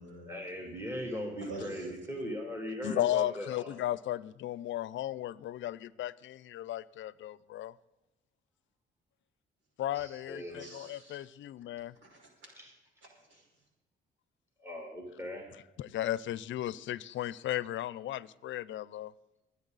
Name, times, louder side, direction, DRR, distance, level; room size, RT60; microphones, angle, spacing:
voice 1, 0.2-3.8 9.9-10.7 12.5-12.7 14.6-15.5 17.1-17.6, equal, 15° right, 0 dB, 3.2 m, -40 dB
voice 2, 1.4-2.0 10.6-11.2 12.0-12.5 13.1-13.4, right 2 dB, 70° right, 0 dB, 5.7 m, -47 dB
voice 3, 2.8-7.7 9.8-11.9 15.8-19.1, left 13 dB, 75° left, 19 dB, 0.6 m, -35 dB
23.0 x 9.5 x 4.1 m, 1.0 s
cardioid pair, 90°, 20 cm